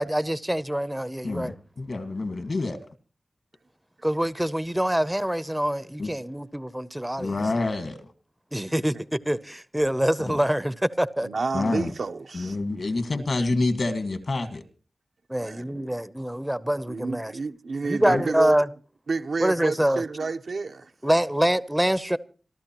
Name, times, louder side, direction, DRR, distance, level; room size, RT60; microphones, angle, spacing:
voice 1, 0.0-1.5 4.0-7.3 8.5-11.3 15.3-17.3 17.8-18.7 19.4-20.0 21.0-22.2, equal, 10° right, 0.7 m, -25 dB
voice 2, 1.2-2.8 6.0-6.1 7.2-8.0 10.3-10.4 11.5-11.9 12.3-14.6 18.1-18.2, left 2 dB, 65° left, 1.7 m, -27 dB
voice 3, 11.2-12.6 15.4-15.9 16.9-18.6 19.1-20.9, right 4 dB, 75° right, 0.9 m, -30 dB
27.5 x 12.5 x 3.0 m
wide cardioid pair, 85°, 0 cm